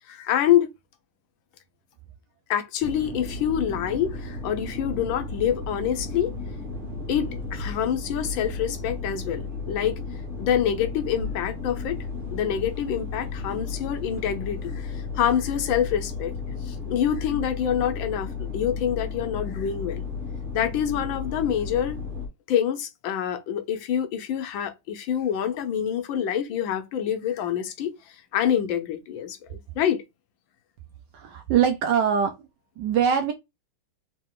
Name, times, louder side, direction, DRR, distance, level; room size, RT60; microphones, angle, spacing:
voice 1, 0.1-0.7 2.5-6.3 7.1-10.0 10.4-12.0 12.3-16.3 16.6-18.3 18.5-20.0 20.5-22.0 22.5-30.0, left 9 dB, 75° left, 1.3 m, -26 dB
sound 1, 2.8-22.3, left 4 dB, 30° right, 1.3 m, -34 dB
voice 2, 31.1-32.5 32.8-33.3, right 8 dB, 75° right, 1.1 m, -23 dB
3.7 x 2.8 x 3.6 m
omnidirectional pair, 2.3 m